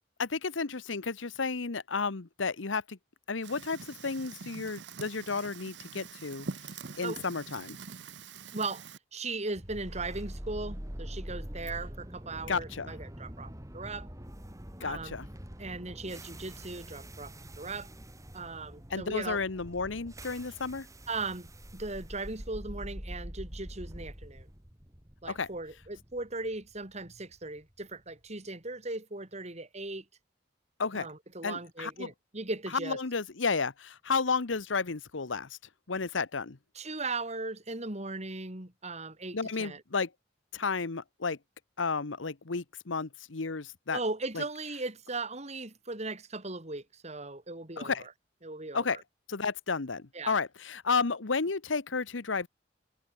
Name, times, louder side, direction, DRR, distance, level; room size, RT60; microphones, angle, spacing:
voice 1, 0.2-3.0 3.3-6.5 7.0-7.8 12.5-12.9 14.8-15.3 18.9-20.9 25.2-25.5 30.8-31.1 31.4-32.1 32.7-35.6 35.9-36.6 39.3-40.1 40.5-41.4 41.8-44.0 44.3-44.4 47.8-48.1 48.7-49.0 49.3-52.5, left 4 dB, 85° left, 1.1 m, -32 dB
Fire, 3.4-9.0, right 4 dB, 65° right, 1.1 m, -44 dB
voice 2, 8.5-8.8 9.1-14.1 14.8-15.2 15.6-17.9 18.3-19.4 21.1-24.5 25.2-30.0 30.9-33.0 36.7-39.8 43.9-48.1 48.4-49.0 50.1-50.3, right 3 dB, 35° right, 3.0 m, -38 dB
sound 1, 9.5-27.6, equal, 15° right, 2.6 m, -44 dB
head